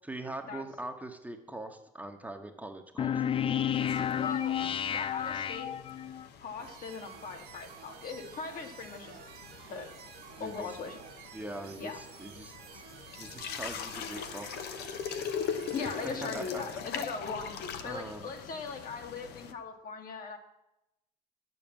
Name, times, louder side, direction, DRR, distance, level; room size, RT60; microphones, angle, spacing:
voice 1, 0.0-3.2 10.4-10.8 11.3-12.8 13.2-14.7 15.8-16.6 17.8-18.3, right 1 dB, 10° right, 4 dB, 1.1 m, -42 dB
sound 1, 3.0-6.3, left 9 dB, 35° left, 0.4 m, -31 dB
sound 2, 3.7-19.5, left 7 dB, 80° left, 1.0 m, -42 dB
voice 2, 4.2-5.8 6.4-9.2 9.6-9.9 10.4-11.0 11.8-12.0 15.7-20.4, left 5 dB, 55° left, 4 dB, 1.8 m, -40 dB
sound 3, 6.6-16.7, right 8 dB, 70° right, 1.4 m, -51 dB
10.0 x 7.1 x 7.4 m, 0.90 s
cardioid pair, 110°, 17 cm